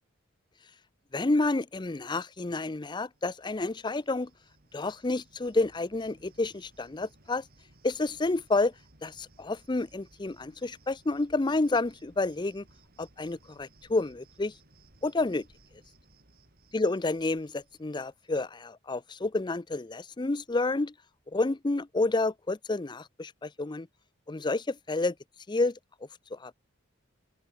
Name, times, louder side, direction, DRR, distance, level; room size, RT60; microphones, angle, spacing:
voice 1, 1.1-4.3 4.7-7.4 7.8-8.7 9.0-12.6 13.0-14.5 15.0-15.5 16.7-20.9 21.3-23.9 24.3-25.1 25.5-25.8 26.3-26.5, left 2 dB, 20° left, 0.5 m, -29 dB
Cricket, 2.8-18.5, right 2 dB, 50° right, 4.8 m, -61 dB
open air
head